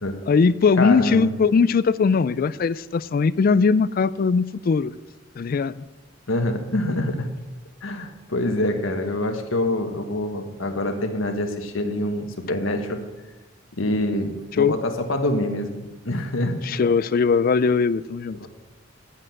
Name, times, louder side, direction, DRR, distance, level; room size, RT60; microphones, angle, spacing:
voice 1, 0.3-4.9 5.4-5.8 14.6-14.7 16.6-18.4, left 5 dB, 45° left, 17 dB, 0.3 m, -20 dB
voice 2, 0.8-1.4 6.3-7.3 7.8-13.0 13.7-16.7 18.4-18.5, left 1 dB, 90° left, 5 dB, 1.4 m, -25 dB
10.0 x 7.5 x 7.5 m, 1.1 s
head